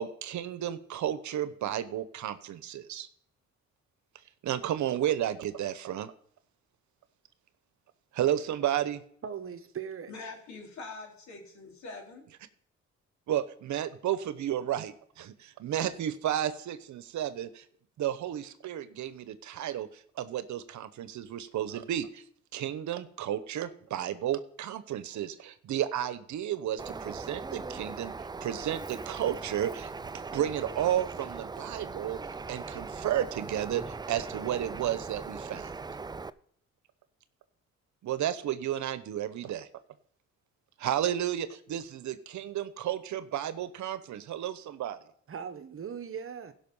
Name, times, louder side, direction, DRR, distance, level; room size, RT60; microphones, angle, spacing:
voice 1, 0.0-3.1 4.4-6.1 8.1-9.0 13.3-17.6 18.0-22.2 22.5-32.2 32.5-35.7 38.0-39.7 40.8-45.0, right 11 dB, 70° right, 0.9 m, -32 dB
voice 2, 9.2-10.1 45.3-46.5, right 7 dB, 45° right, 1.1 m, -39 dB
voice 3, 10.1-12.3, left 3 dB, 65° left, 3.7 m, -44 dB
Bird, 26.8-36.3, right 4 dB, 15° right, 0.4 m, -40 dB
16.0 x 5.9 x 5.5 m
cardioid pair, 90°, 30 cm